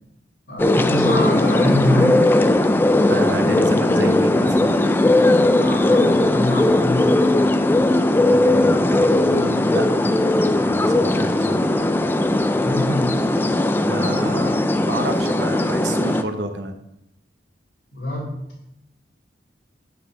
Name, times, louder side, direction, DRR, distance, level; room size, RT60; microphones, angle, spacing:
voice 1, 0.5-2.3 5.5-7.1 12.6-13.2 17.9-18.4, left 1 dB, 75° left, -8 dB, 2.5 m, -24 dB
sound 1, 0.6-16.2, left 1 dB, 10° left, 0.3 m, -18 dB
voice 2, 3.1-4.8 8.3-10.1 10.6-11.7 13.8-16.7, right 1 dB, 70° right, 6 dB, 1.0 m, -30 dB
6.3 x 5.9 x 6.1 m, 0.81 s
head